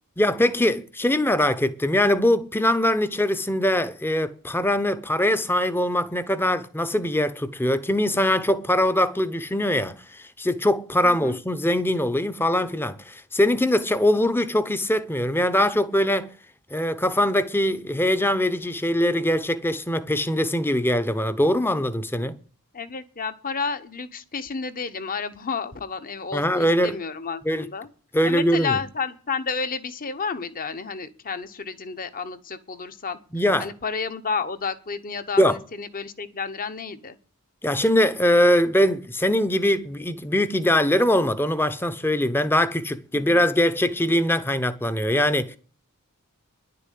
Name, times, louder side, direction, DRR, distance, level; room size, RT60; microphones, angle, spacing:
voice 1, 0.2-16.3 16.7-22.4 26.3-27.0 27.5-27.7 28.1-28.8 33.3-33.7 35.4-35.6 37.6-45.6, left 1 dB, 10° left, 0.8 m, -22 dB
voice 2, 11.0-11.4 22.7-27.9 28.2-33.2 33.6-37.2, left 5 dB, 40° left, 1.0 m, -31 dB
10.5 x 6.9 x 9.3 m
head